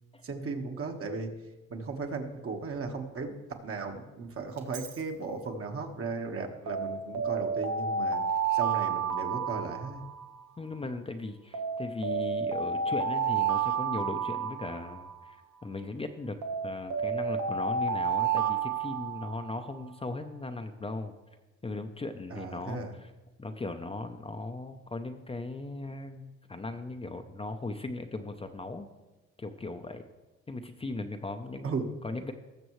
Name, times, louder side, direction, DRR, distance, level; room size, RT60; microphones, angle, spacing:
voice 1, 0.2-1.3 1.7-8.2 8.5-10.0 22.3-22.9 31.6-31.9, right 4 dB, 45° right, 3 dB, 1.4 m, -36 dB
Alarm, 4.6-4.9 6.7-10.4 11.5-15.3 16.4-19.6, right 6 dB, 75° right, 1.1 m, -31 dB
voice 2, 10.6-15.4 15.6-16.4 16.6-21.1 21.6-23.1 23.4-28.9 29.4-30.0 30.5-32.3, left 2 dB, 20° left, 6 dB, 0.6 m, -38 dB
19.0 x 6.8 x 3.2 m, 1.1 s
cardioid pair, 90°, 30 cm